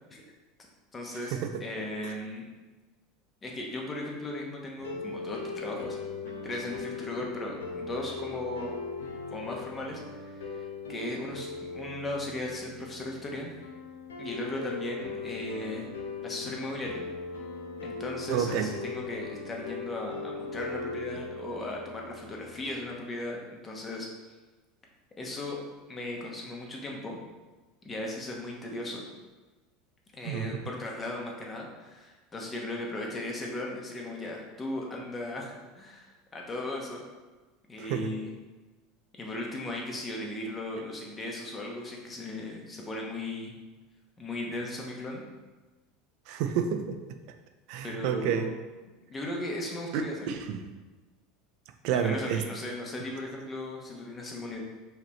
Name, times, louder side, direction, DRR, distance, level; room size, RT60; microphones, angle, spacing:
voice 1, 0.9-2.4 3.4-6.0 6.4-8.7 9.3-13.5 14.2-15.9 16.2-17.0 17.8-23.4 23.6-24.1 25.2-25.6 25.9-27.2 27.8-29.0 30.1-37.0 37.7-38.3 39.1-43.5 44.2-45.2 47.8-48.5 49.1-50.3 51.9-54.6, left 1 dB, 25° left, -1 dB, 1.0 m, -37 dB
sound 1, 4.8-22.8, left 4 dB, 90° left, 0.5 m, -39 dB
voice 2, 18.3-18.7 30.2-30.5 37.8-38.1 46.3-47.0 47.7-48.5 49.9-50.7 51.8-52.4, right 8 dB, 65° right, 7 dB, 0.5 m, -30 dB
5.0 x 3.1 x 2.9 m, 1.2 s
hypercardioid pair, 95°, 0 cm